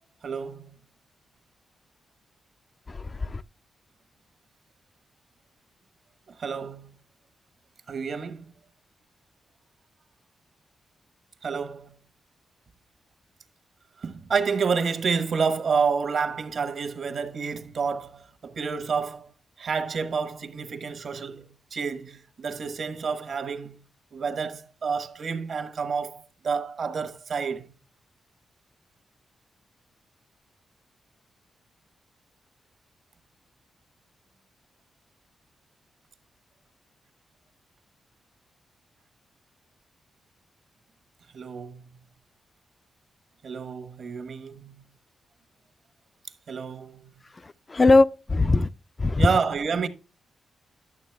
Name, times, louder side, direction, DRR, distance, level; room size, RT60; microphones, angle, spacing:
voice 1, 0.2-0.8 6.4-6.9 7.9-8.5 11.4-12.0 14.0-19.3 19.6-23.8 24.1-27.7 41.3-41.9 43.4-44.8 46.5-47.1 49.2-49.9, right 5 dB, 60° right, 1.2 m, -29 dB
voice 2, 2.9-3.4 47.4-48.7 49.0-49.3, left 3 dB, 30° left, 0.3 m, -21 dB
11.0 x 7.1 x 3.4 m
cardioid pair, 95°, 0 cm